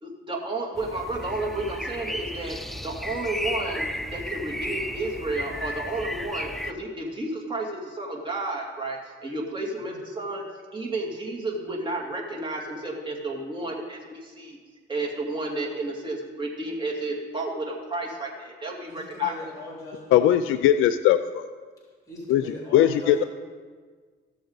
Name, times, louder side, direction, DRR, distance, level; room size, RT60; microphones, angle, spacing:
voice 1, 0.0-2.6 2.8-10.4 10.7-14.6 14.9-19.3, right 2 dB, 25° right, -1 dB, 2.3 m, -32 dB
sound 1, 0.8-6.7, left 1 dB, ahead, 0.5 m, -34 dB
voice 2, 18.9-20.2 22.1-23.3, left 1 dB, 15° left, -3 dB, 3.2 m, -39 dB
voice 3, 20.1-21.5 22.3-22.4 22.7-23.2, left 11 dB, 90° left, 11 dB, 0.4 m, -20 dB
15.0 x 7.0 x 4.0 m, 1.5 s
cardioid pair, 90°, 20 cm